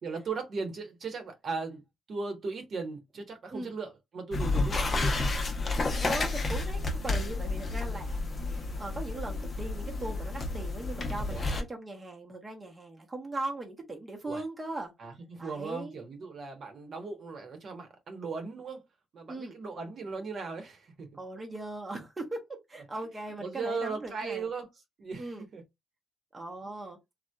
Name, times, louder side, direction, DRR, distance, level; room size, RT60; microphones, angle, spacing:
voice 1, 0.0-1.8 2.1-5.4 11.3-11.5 14.3-14.4 15.0-18.8 19.1-21.1 22.7-22.8 23.4-24.7 25.0-25.6, right 4 dB, 55° right, 0.9 m, -38 dB
sound 1, 4.3-11.6, left 2 dB, 40° left, 0.6 m, -31 dB
voice 2, 6.0-8.2 8.8-14.9 15.4-16.0 19.3-19.6 21.1-22.4 22.7-24.5 25.2-25.4 26.3-27.0, right 2 dB, 20° right, 0.7 m, -39 dB
2.7 x 2.1 x 2.2 m
cardioid pair, 90°, 0 cm